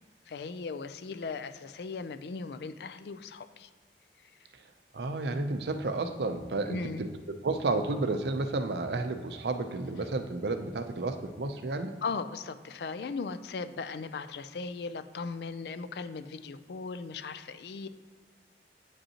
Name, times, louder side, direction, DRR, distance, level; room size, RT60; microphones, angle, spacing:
voice 1, 0.3-3.7 6.7-7.0 12.0-17.9, left 4 dB, 70° left, 12 dB, 0.4 m, -38 dB
voice 2, 4.9-7.1 7.4-11.9, right 3 dB, 70° right, 8 dB, 0.5 m, -31 dB
8.5 x 5.3 x 2.9 m, 1.5 s
head